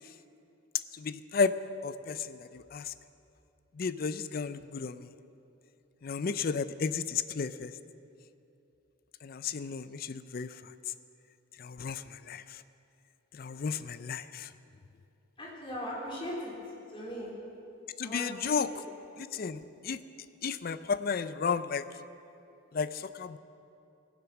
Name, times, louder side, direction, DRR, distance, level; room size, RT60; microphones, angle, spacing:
voice 1, 0.9-1.5 1.8-2.9 3.8-5.1 6.0-7.7 9.2-10.6 11.6-12.6 13.3-14.5 18.0-18.8 19.2-20.0 20.4-21.8 22.7-23.4, left 5 dB, 50° left, 14 dB, 0.4 m, -33 dB
voice 2, 15.4-16.5 16.9-17.3 18.0-18.8, equal, 25° left, -4 dB, 3.1 m, -39 dB
20.0 x 7.4 x 5.9 m, 2.7 s
head